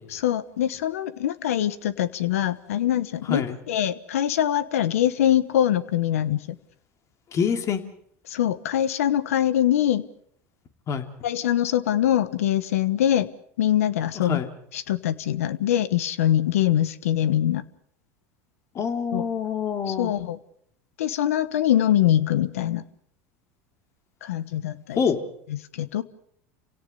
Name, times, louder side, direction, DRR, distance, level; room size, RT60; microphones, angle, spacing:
voice 1, 0.1-6.4 8.3-10.0 11.2-13.3 13.6-14.4 14.7-17.6 19.1-19.3 19.9-20.4 21.0-22.8 24.2-25.0 25.5-26.0, left 11 dB, 85° left, 16 dB, 1.2 m, -23 dB
voice 2, 7.3-7.8 10.9-11.1 14.3-14.5 18.7-20.1 25.0-25.3, left 6 dB, 40° left, 7 dB, 2.8 m, -26 dB
30.0 x 17.5 x 5.5 m, 0.65 s
hypercardioid pair, 95°, 8 cm